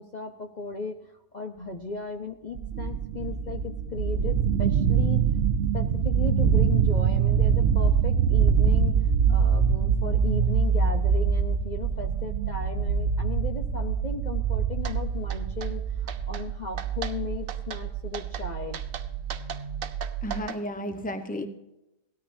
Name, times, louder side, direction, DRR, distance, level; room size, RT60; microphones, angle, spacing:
voice 1, 0.0-5.2 5.7-8.9 9.3-18.8, left 4 dB, 40° left, 3 dB, 0.8 m, -36 dB
sound 1, 2.6-20.4, right 7 dB, 60° right, 0.9 m, -25 dB
sound 2, 14.9-15.0 15.3-15.7 16.1-16.5 16.8-17.2 17.5-17.8 18.1-18.5 18.7-20.6, right 7 dB, 90° right, 1.2 m, -37 dB
voice 2, 20.2-21.5, equal, 5° left, 7 dB, 0.9 m, -33 dB
17.5 x 13.5 x 2.7 m, 0.90 s
omnidirectional pair, 1.4 m